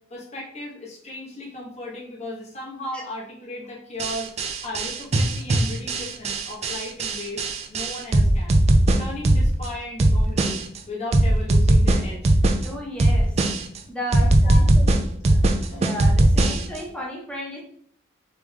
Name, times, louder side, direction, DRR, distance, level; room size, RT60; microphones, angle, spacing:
voice 1, 0.1-4.3 4.6-8.6 9.0-12.4 14.4-14.6 15.3-15.9 16.4-16.5, left 1 dB, 35° left, -3 dB, 1.1 m, -36 dB
sound 1, 4.0-9.7 10.0-10.8 11.1-12.7 13.0-13.8 14.1-16.8, right 1 dB, 35° right, 0.3 m, -19 dB
voice 2, 12.6-13.4 13.9-15.0 15.7-17.6, equal, 5° left, -3 dB, 0.9 m, -34 dB
3.5 x 3.3 x 3.2 m, 0.63 s
head